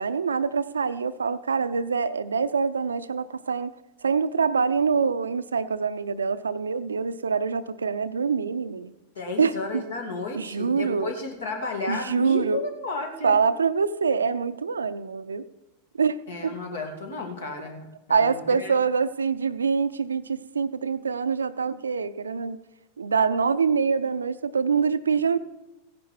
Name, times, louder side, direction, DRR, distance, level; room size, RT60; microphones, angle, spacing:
voice 1, 0.0-3.7 4.0-8.9 9.4-9.8 10.4-11.1 11.9-12.6 13.2-15.4 16.0-16.6 18.1-22.6 23.0-25.4, right 5 dB, 75° right, 13 dB, 0.6 m, -25 dB
voice 2, 9.1-13.4 16.3-18.7, left 3 dB, 65° left, 3 dB, 2.6 m, -33 dB
16.0 x 10.5 x 4.5 m, 0.95 s
figure-of-eight pair, 90°, 0 cm